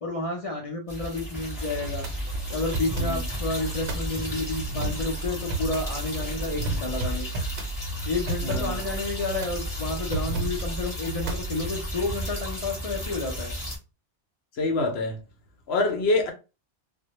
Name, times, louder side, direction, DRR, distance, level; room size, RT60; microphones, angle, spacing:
voice 1, 0.0-2.1 2.5-7.3 8.1-13.5, left 3 dB, 50° left, 0.4 m, -30 dB
sound 1, 0.9-13.8, equal, 20° left, 1.0 m, -35 dB
sound 2, 1.7-11.9, right 2 dB, 75° right, 0.9 m, -33 dB
voice 2, 8.4-8.8 11.2-11.3 14.6-15.2 15.7-16.3, left 2 dB, 65° left, 0.8 m, -26 dB
2.1 x 2.1 x 2.8 m
omnidirectional pair, 1.2 m